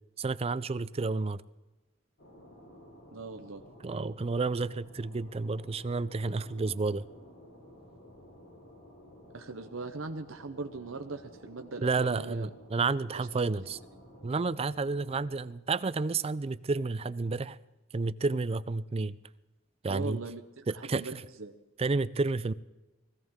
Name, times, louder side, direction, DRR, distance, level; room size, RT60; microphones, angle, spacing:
voice 1, 0.2-1.4 3.8-7.0 11.8-13.8 14.2-17.6 17.9-19.2 19.8-20.2 20.7-21.0 21.8-22.5, right 3 dB, 30° right, 16 dB, 0.4 m, -30 dB
sound 1, 2.2-15.4, equal, 65° left, 4.3 m, -53 dB
voice 2, 3.1-3.6 9.3-12.5 13.1-13.3 13.7-13.8 19.9-21.5, right 3 dB, 70° right, 6 dB, 0.9 m, -40 dB
20.5 x 16.0 x 3.7 m, 1.0 s
head